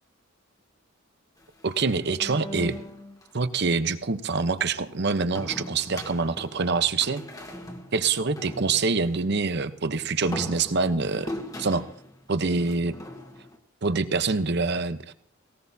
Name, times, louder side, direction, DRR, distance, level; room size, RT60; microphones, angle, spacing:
sound 1, 1.4-3.3 5.3-9.2 10.0-13.6, left 1 dB, 15° left, 1.3 m, -40 dB
voice 1, 1.6-2.8 3.3-7.2 7.9-11.3 11.6-11.8 12.3-13.0 13.8-15.1, right 4 dB, 55° right, 11 dB, 0.8 m, -25 dB
19.0 x 18.5 x 2.7 m, 0.65 s
head